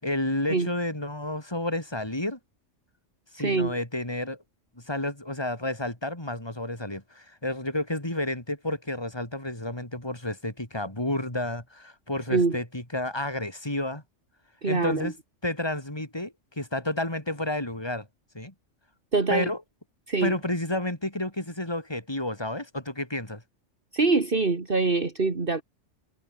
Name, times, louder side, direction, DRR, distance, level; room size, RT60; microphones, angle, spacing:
voice 1, 0.0-2.4 3.3-4.4 4.8-14.0 14.6-15.1 15.4-18.1 18.3-18.5 19.3-19.6 20.2-23.4, left 1 dB, 20° left, 4.6 m, -31 dB
voice 2, 3.4-3.8 12.3-12.6 14.6-15.1 19.1-19.5 20.1-20.3 23.9-25.6, right 3 dB, 45° right, 2.2 m, -24 dB
omnidirectional pair, 1.2 m